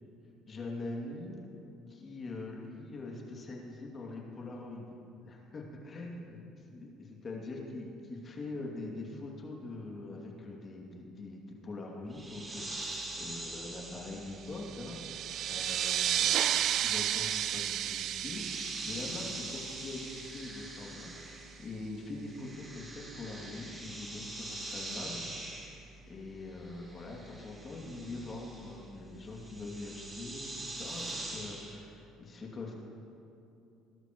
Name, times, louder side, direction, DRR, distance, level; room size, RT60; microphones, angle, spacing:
voice 1, 0.5-1.4 1.9-4.9 5.2-6.4 6.7-25.3 26.0-32.7, left 2 dB, 35° left, -1 dB, 2.6 m, -43 dB
sound 1, 12.1-21.8 22.1-31.8, right 2 dB, 20° right, 2.8 m, -44 dB
sound 2, 14.5-20.8, right 10 dB, 55° right, 0.5 m, -33 dB
21.0 x 12.0 x 3.1 m, 2.8 s
cardioid pair, 105°, 0 cm